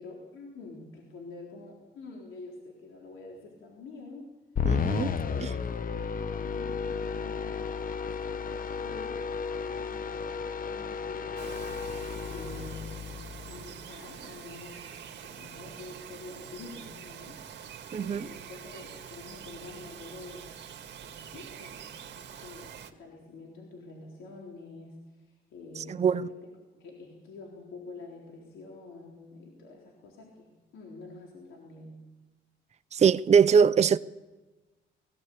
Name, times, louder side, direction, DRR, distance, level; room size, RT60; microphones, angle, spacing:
voice 1, 0.0-4.3 5.2-5.7 6.3-7.8 8.1-11.7 12.3-12.9 13.4-17.4 18.0-20.5 21.0-21.9 22.2-26.5 26.7-32.0, left 3 dB, 80° left, 4.0 m, -47 dB
sound 1, 4.6-13.9, left 6 dB, 45° left, 1.1 m, -33 dB
voice 2, 4.6-5.1 17.9-18.3 25.8-26.3 32.9-34.0, right 6 dB, 35° right, 0.6 m, -22 dB
Bird vocalization bird call bird song, 11.4-22.9, right 8 dB, 60° right, 1.9 m, -45 dB
19.5 x 16.5 x 8.5 m
cardioid pair, 90°, 20 cm